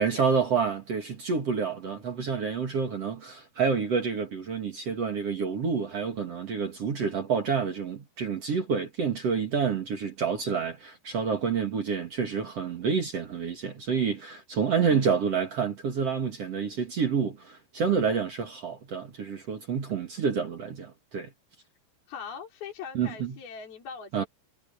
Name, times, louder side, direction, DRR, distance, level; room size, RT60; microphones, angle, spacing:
voice 1, 0.0-21.3 22.9-23.4 24.1-24.2, right 6 dB, 50° right, 2.0 m, -28 dB
voice 2, 22.1-24.3, left 6 dB, 55° left, 6.7 m, -41 dB
omnidirectional pair, 5.4 m